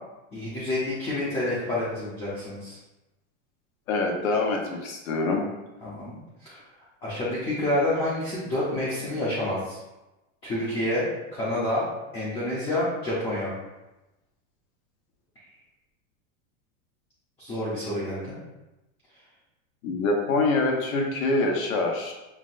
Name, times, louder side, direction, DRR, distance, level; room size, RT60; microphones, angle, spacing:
voice 1, 0.3-2.8 5.8-6.6 7.0-9.8 10.4-11.0 11.3-11.8 12.1-13.5 17.4-18.4, left 1 dB, 15° left, -8 dB, 0.5 m, -28 dB
voice 2, 3.9-5.4 19.8-22.1, left 3 dB, 80° left, 1 dB, 1.0 m, -25 dB
5.8 x 2.1 x 2.5 m, 1.0 s
supercardioid pair, 160°, 40 cm